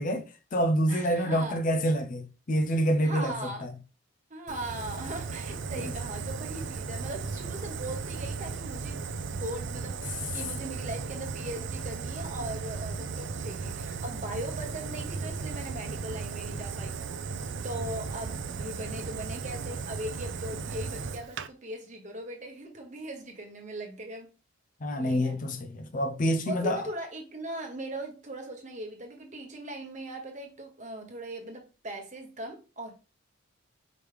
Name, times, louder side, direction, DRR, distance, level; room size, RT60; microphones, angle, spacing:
voice 1, 0.0-3.7 5.8-5.9 24.8-26.9, equal, 40° left, 0.5 m, -27 dB
voice 2, 0.9-1.6 3.0-3.7 4.3-17.0 17.6-24.3 25.0-25.4 26.5-33.0, right 1 dB, 35° right, 1.1 m, -39 dB
Fire, 4.5-21.5, right 4 dB, 60° right, 0.4 m, -36 dB
5.0 x 3.1 x 3.3 m
head